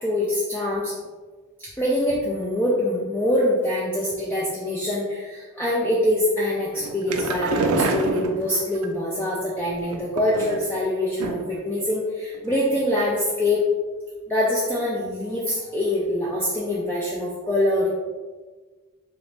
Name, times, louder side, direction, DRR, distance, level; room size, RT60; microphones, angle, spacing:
voice 1, 0.0-0.9 1.8-13.6 14.3-17.9, left 1 dB, 10° left, -6 dB, 0.3 m, -24 dB
sound 1, 6.8-8.9 9.8-10.8 11.2-11.6 11.9-12.0 12.3-12.4, right 3 dB, 80° right, 0.4 m, -27 dB
2.9 x 2.6 x 3.2 m, 1.4 s
head